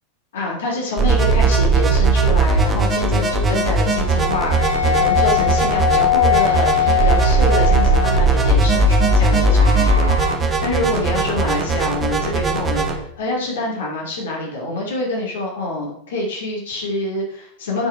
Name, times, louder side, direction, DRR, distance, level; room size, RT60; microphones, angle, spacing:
voice 1, 0.3-17.9, left 2 dB, 60° left, -1 dB, 2.5 m, -26 dB
sound 1, 1.0-12.9, right 3 dB, 15° right, 1.5 m, -18 dB
sound 2, 4.0-10.4, left 10 dB, 85° right, 0.9 m, -22 dB
9.3 x 5.4 x 4.8 m, 0.69 s
figure-of-eight pair, 90°, 0 cm